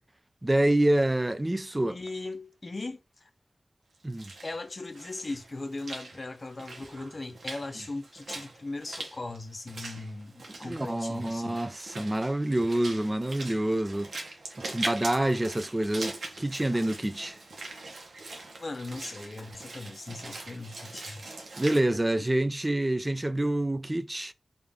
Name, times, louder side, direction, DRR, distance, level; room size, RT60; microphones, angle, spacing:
voice 1, 0.4-2.0 4.0-4.3 10.5-14.3 14.7-17.4 21.6-24.3, right 1 dB, 20° right, 0.3 m, -27 dB
voice 2, 1.8-3.3 4.4-11.6 18.6-21.3, left 2 dB, 40° left, 0.5 m, -39 dB
Walk footsteps / Splash splatter, 3.9-21.8, right 2 dB, 90° right, 0.9 m, -42 dB
3.4 x 2.4 x 3.5 m
wide cardioid pair, 90°, 0 cm